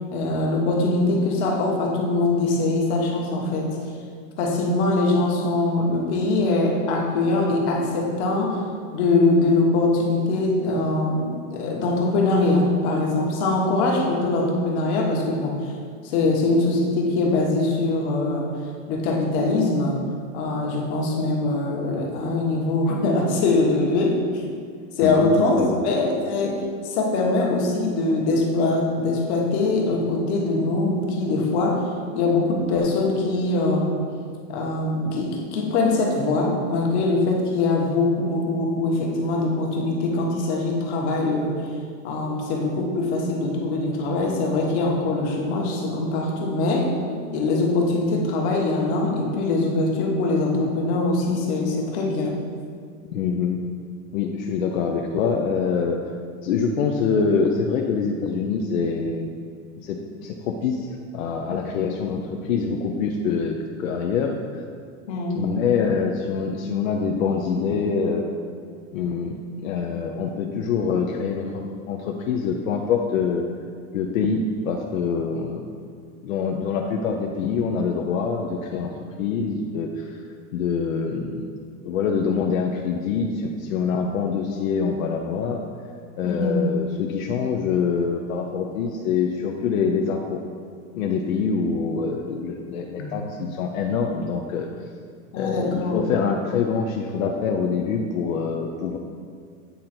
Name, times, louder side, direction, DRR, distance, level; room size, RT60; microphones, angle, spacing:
voice 1, 0.1-3.7 4.4-8.6 8.9-15.6 16.0-18.5 18.9-20.0 20.3-24.4 25.0-31.9 32.1-34.0 34.5-41.7 42.0-46.9 47.3-52.4 65.1-65.4 86.2-86.6 93.0-93.3 95.3-96.0, left 2 dB, 55° left, -1 dB, 1.4 m, -22 dB
voice 2, 25.0-25.8 53.1-53.6 54.1-56.0 56.4-59.3 59.8-60.9 61.1-64.6 65.3-68.2 68.9-69.4 69.6-73.4 73.9-75.7 76.2-78.9 79.2-80.2 80.5-81.5 81.8-85.6 86.2-90.4 90.9-94.7 95.4-99.0, left 5 dB, 85° left, 1 dB, 0.7 m, -25 dB
8.2 x 3.9 x 4.4 m, 2.1 s
supercardioid pair, 150°, 40 cm